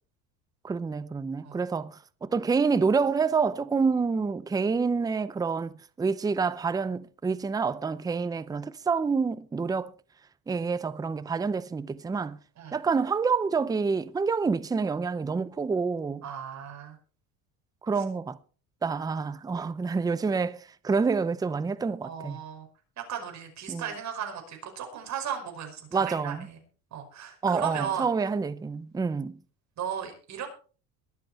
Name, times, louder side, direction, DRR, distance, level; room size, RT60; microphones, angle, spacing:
voice 1, 0.6-9.9 10.5-12.4 12.7-16.3 17.8-18.4 18.8-22.4 23.7-23.8 25.9-26.5 27.4-29.4, right 5 dB, 10° right, 0.5 m, -28 dB
voice 2, 16.2-17.0 22.0-22.7 23.0-26.6 26.9-28.1 29.8-30.5, right 8 dB, 45° right, 5.3 m, -36 dB
22.5 x 7.8 x 4.2 m
cardioid pair, 130°, 38 cm